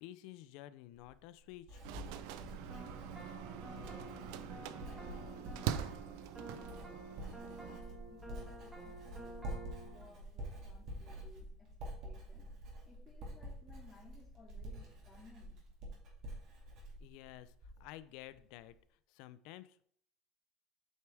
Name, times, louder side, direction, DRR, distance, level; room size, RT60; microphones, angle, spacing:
voice 1, 0.0-1.8 17.0-18.7 19.1-19.8, left 14 dB, 65° left, 15 dB, 0.5 m, -52 dB
Writing, 0.9-18.0 18.3-18.7, right 1 dB, 50° right, 2.3 m, -48 dB
sound 1, 1.8-7.8, right 10 dB, 75° right, 0.4 m, -44 dB
sound 2, 2.7-10.1, right 1 dB, 10° right, 1.6 m, -51 dB
voice 2, 3.3-9.4 9.8-12.5 12.8-15.6, left 2 dB, 15° left, -3 dB, 2.4 m, -62 dB
8.1 x 4.7 x 3.4 m, 0.62 s
cardioid pair, 140°, 0 cm